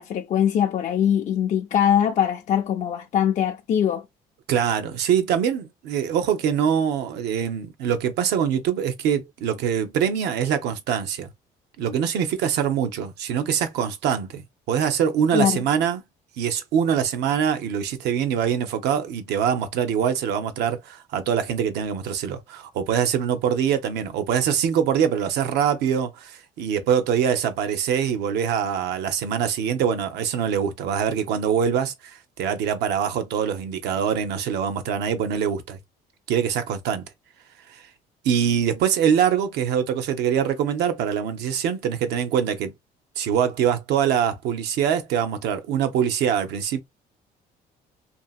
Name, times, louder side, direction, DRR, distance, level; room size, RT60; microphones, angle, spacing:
voice 1, 0.0-4.0 15.3-15.6, left 9 dB, 45° left, 0.4 m, -22 dB
voice 2, 4.5-11.3 11.8-16.0 16.4-35.8 36.3-37.0 37.7-37.9 38.2-42.7 43.2-46.8, right 8 dB, 80° right, 0.7 m, -24 dB
2.8 x 2.7 x 2.3 m
cardioid pair, 110°, 17 cm